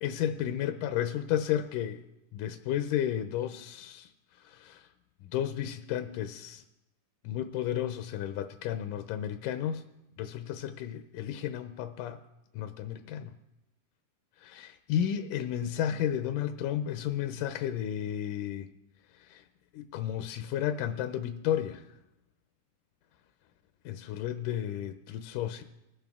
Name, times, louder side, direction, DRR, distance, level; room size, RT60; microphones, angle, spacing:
voice 1, 0.0-2.0 2.3-4.9 5.2-6.6 7.2-9.8 10.2-12.2 12.5-13.4 14.4-18.7 19.1-19.4 19.7-21.9 23.9-25.6, left 10 dB, 85° left, 9 dB, 1.9 m, -33 dB
20.0 x 9.0 x 3.5 m, 0.90 s
omnidirectional pair, 4.2 m